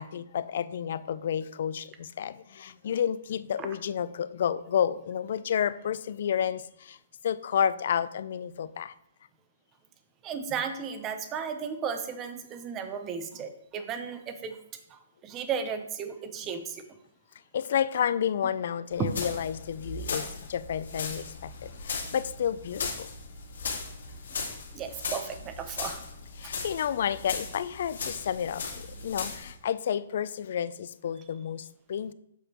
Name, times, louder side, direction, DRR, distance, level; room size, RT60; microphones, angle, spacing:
voice 1, 0.0-7.0 7.2-8.9 17.5-23.1 26.4-32.1, left 8 dB, 50° left, 16 dB, 0.4 m, -30 dB
voice 2, 10.2-14.6 14.9-16.8 19.0-19.1 24.7-26.0, right 6 dB, 15° right, 8 dB, 0.6 m, -34 dB
sound 1, 18.9-29.5, left 4 dB, 80° left, 2.4 m, -37 dB
8.0 x 6.4 x 2.9 m, 0.78 s
hypercardioid pair, 165°, 0 cm